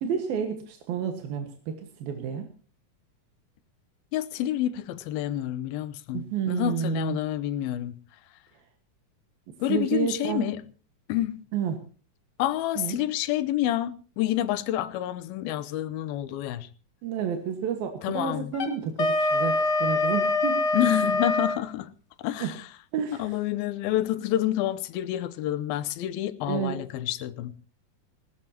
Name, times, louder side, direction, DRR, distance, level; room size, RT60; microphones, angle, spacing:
voice 1, 0.0-2.5 6.1-7.2 9.7-10.5 11.5-11.8 12.8-13.0 17.0-20.6 22.4-22.5 22.9-23.4 26.5-26.8, right 7 dB, 80° right, 3.4 m, -30 dB
voice 2, 4.1-7.9 9.6-10.7 11.1-11.4 12.4-16.7 18.0-18.5 20.7-21.9 22.2-22.5 23.2-27.5, left 13 dB, 90° left, 2.7 m, -28 dB
Wind instrument woodwind instrument, 18.5-21.6, left 2 dB, 40° left, 1.6 m, -24 dB
20.0 x 18.0 x 2.9 m
omnidirectional pair, 4.1 m